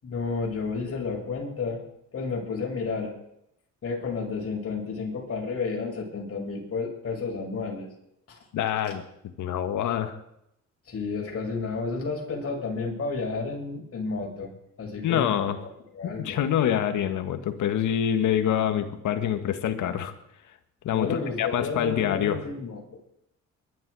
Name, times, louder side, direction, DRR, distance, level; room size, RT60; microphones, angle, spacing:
voice 1, 0.0-1.8 2.1-3.1 3.8-7.9 8.3-8.4 10.9-14.5 14.8-16.4 20.9-22.9, left 4 dB, 50° left, -1 dB, 6.9 m, -31 dB
voice 2, 8.5-9.0 9.4-10.2 15.0-15.6 16.0-20.1 20.8-22.4, left 10 dB, 80° left, 8 dB, 1.9 m, -26 dB
22.0 x 12.5 x 4.9 m, 0.78 s
cardioid pair, 90°, 30 cm